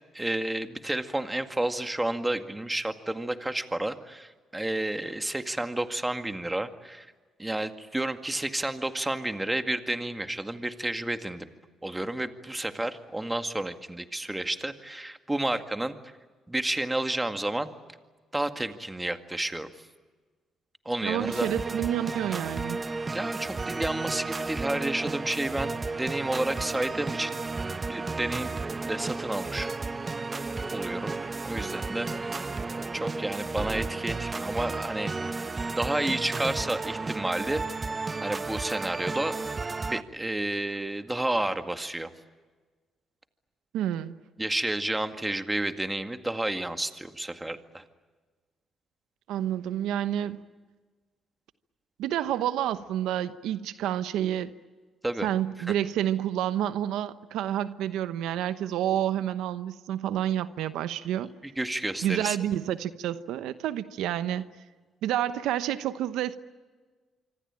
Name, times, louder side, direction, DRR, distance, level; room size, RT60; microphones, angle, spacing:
voice 1, 0.1-7.1 7.4-11.5 11.8-16.0 16.5-17.7 18.3-19.7 20.9-21.5 23.1-27.4 27.9-28.5 28.8-29.7 30.3-30.4 30.7-31.1 31.4-32.4 32.9-35.3 35.8-37.9 38.2-39.4 39.8-42.1 44.4-47.8 55.0-55.3 55.7-55.8 61.6-62.4, right 1 dB, 10° right, 8 dB, 2.1 m, -31 dB
voice 2, 21.0-22.8 43.7-44.1 49.3-50.4 52.0-54.5 55.2-61.3 62.0-64.4 65.0-66.4, right 11 dB, 90° right, 12 dB, 1.0 m, -29 dB
sound 1, 21.2-40.0, right 3 dB, 30° right, 1.1 m, -33 dB
25.5 x 25.5 x 8.9 m, 1.4 s
cardioid pair, 90°, 0 cm